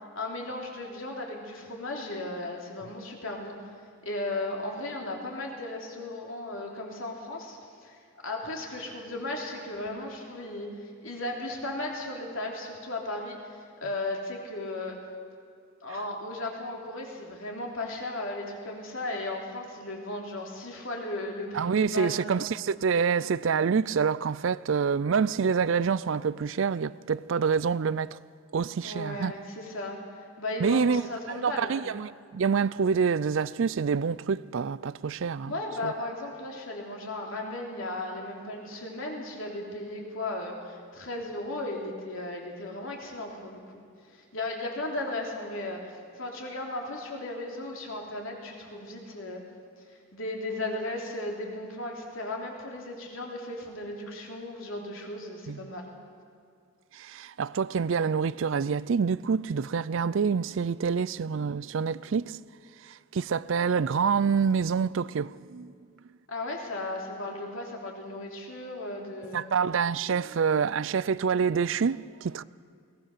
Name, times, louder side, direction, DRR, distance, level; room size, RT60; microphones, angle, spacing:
voice 1, 0.1-3.5 4.0-13.4 13.8-14.9 15.8-22.4 28.8-31.8 35.4-43.6 44.1-49.4 49.9-55.9 66.3-69.5, left 2 dB, 65° left, 3.3 m, -36 dB
voice 2, 21.5-28.2 28.5-29.3 30.6-31.0 31.3-35.5 35.8-35.9 55.5-55.7 56.9-62.4 62.8-65.7 69.3-72.4, right 6 dB, 60° right, 0.4 m, -27 dB
21.5 x 18.5 x 6.7 m
head